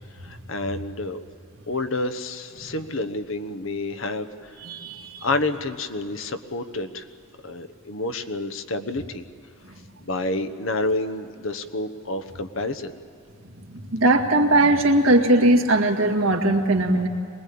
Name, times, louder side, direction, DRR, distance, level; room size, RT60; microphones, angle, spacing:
voice 1, 0.2-1.2 1.7-4.6 5.2-7.1 7.4-9.2 10.0-12.9, left 2 dB, 70° left, 10 dB, 1.1 m, -29 dB
voice 2, 4.6-5.3 13.9-17.1, right 1 dB, 70° right, 1 dB, 2.1 m, -19 dB
23.5 x 20.0 x 8.6 m, 2.6 s
head